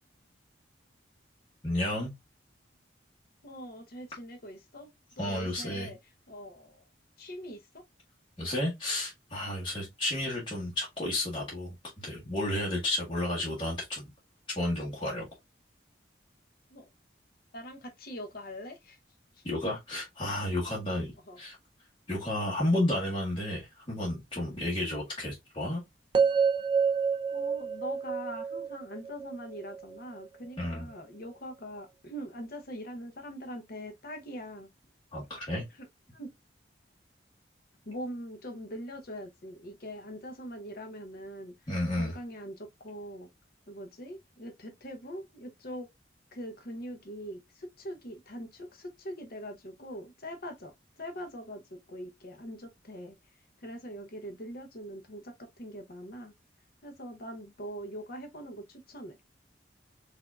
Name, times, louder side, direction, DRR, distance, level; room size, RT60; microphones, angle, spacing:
voice 1, 1.6-2.1 5.2-5.9 8.4-14.1 14.5-15.3 19.4-21.6 22.1-25.8 30.6-30.9 35.1-35.6 41.7-42.2, left 1 dB, 25° left, 1.3 m, -32 dB
voice 2, 3.4-4.9 5.2-6.0 6.3-6.8 7.2-7.8 16.7-16.9 17.5-19.0 19.4-19.5 21.3-21.4 27.3-34.7 35.8-35.9 36.1-36.3 37.9-41.5 41.9-43.3 43.7-45.9 46.3-53.2 53.6-56.3 56.8-59.2, equal, 55° left, 0.9 m, -42 dB
sound 1, 26.1-30.3, right 6 dB, 25° right, 0.4 m, -28 dB
4.6 x 2.7 x 2.3 m
head